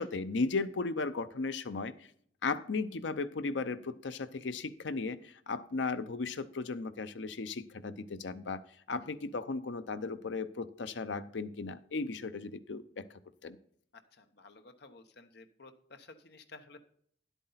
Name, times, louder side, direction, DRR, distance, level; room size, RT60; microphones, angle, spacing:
voice 1, 0.0-1.9 2.4-8.6 8.9-13.0 13.4-13.6, left 3 dB, 80° left, 13 dB, 0.7 m, -36 dB
voice 2, 13.9-16.8, left 3 dB, 65° left, 8 dB, 1.0 m, -54 dB
10.5 x 8.2 x 4.0 m, 0.63 s
head